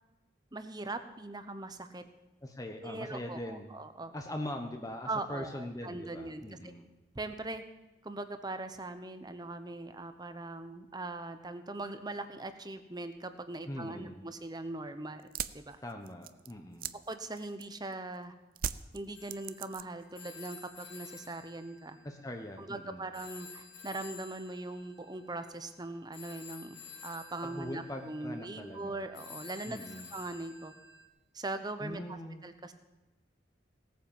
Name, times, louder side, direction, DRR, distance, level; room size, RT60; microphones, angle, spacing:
voice 1, 0.5-2.0 2.8-4.1 5.1-6.7 7.1-7.6 8.0-15.2 15.5-15.8 17.1-18.3 18.9-22.0 22.6-30.7 31.3-32.2 32.4-32.7, right 2 dB, 20° right, 9 dB, 1.0 m, -41 dB
voice 2, 2.4-3.7 4.1-6.9 13.7-14.2 15.8-16.9 22.0-23.1 27.4-29.0 29.7-30.1 31.8-32.4, left 1 dB, 20° left, 4 dB, 1.0 m, -41 dB
sound 1, 15.2-17.9 18.6-20.1 20.4-21.0, right 8 dB, 50° right, 0.5 m, -40 dB
Telephone, 19.1-22.8 23.1-31.1, left 6 dB, 75° left, 2.2 m, -52 dB
17.5 x 9.2 x 7.3 m, 1.1 s
head